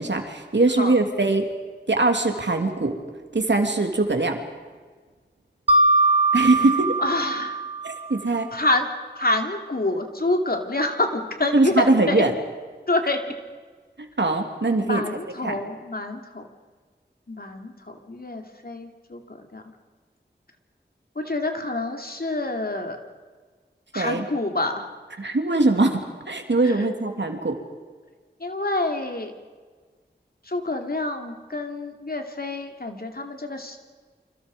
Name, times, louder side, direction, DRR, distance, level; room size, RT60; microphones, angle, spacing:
voice 1, 0.0-1.5 1.9-3.0 3.3-4.4 6.3-6.9 7.8-8.5 11.5-12.3 14.0-15.0 15.4-15.6 23.9-24.2 25.2-27.6, right 2 dB, 70° right, 4 dB, 3.0 m, -22 dB
Mallet percussion, 5.7-8.4, right 2 dB, 30° right, 2.5 m, -21 dB
voice 2, 7.0-7.6 8.5-8.9 9.1-12.2 12.9-13.3 14.8-16.4 17.3-19.6 21.1-23.0 23.9-24.9 26.6-26.8 28.4-29.3 30.5-33.8, left 2 dB, 55° left, 4 dB, 3.0 m, -27 dB
29.0 x 26.0 x 5.4 m, 1.5 s
wide cardioid pair, 45°, 19 cm